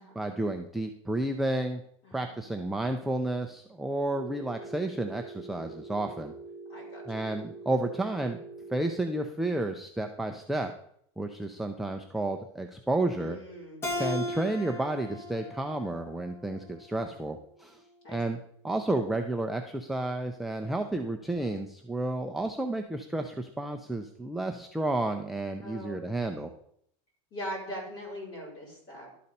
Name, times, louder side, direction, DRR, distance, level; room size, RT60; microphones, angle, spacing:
voice 1, 0.1-1.8 2.1-6.3 7.1-8.4 8.7-10.7 11.2-13.4 14.0-17.8 18.1-18.4 18.6-26.5, right 2 dB, ahead, 4 dB, 0.3 m, -31 dB
voice 2, 2.0-2.5 6.7-7.3 13.2-14.3 18.0-18.2 25.6-26.4 27.3-29.1, equal, 35° left, -4 dB, 4.3 m, -42 dB
Telephone, 4.1-9.1, right 3 dB, 80° left, 2.3 m, -44 dB
Keyboard (musical), 13.8-17.1, left 1 dB, 20° left, 1.4 m, -37 dB
11.5 x 4.2 x 5.2 m, 0.68 s
supercardioid pair, 155°, 15 cm